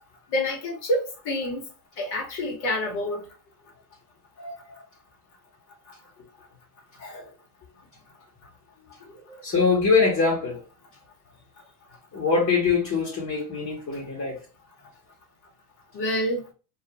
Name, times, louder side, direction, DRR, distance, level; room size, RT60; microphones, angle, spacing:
voice 1, 0.3-1.6 2.0-3.3 4.4-4.5 7.0-7.2 9.3-9.4 15.9-16.4, left 1 dB, 60° left, 1.4 m, -28 dB
voice 2, 9.4-10.6 12.1-14.4, left 4 dB, 40° left, 1.3 m, -23 dB
2.5 x 2.3 x 2.9 m
hypercardioid pair, 75°, 44 cm